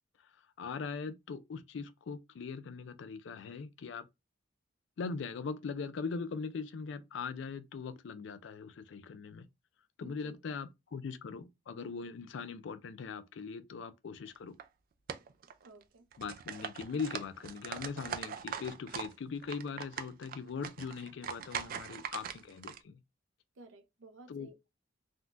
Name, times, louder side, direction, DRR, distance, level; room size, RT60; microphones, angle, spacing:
voice 1, 0.6-4.1 5.0-9.4 10.0-14.5 16.2-23.0 24.3-24.7, left 5 dB, 70° left, 0.4 m, -41 dB
voice 2, 10.0-10.4 15.6-16.1 23.6-24.7, right 2 dB, 90° right, 0.6 m, -55 dB
sound 1, 14.3-14.6 15.1-15.8 16.1-19.1 19.4-22.8, right 8 dB, 45° right, 0.3 m, -41 dB
3.6 x 2.2 x 2.4 m
head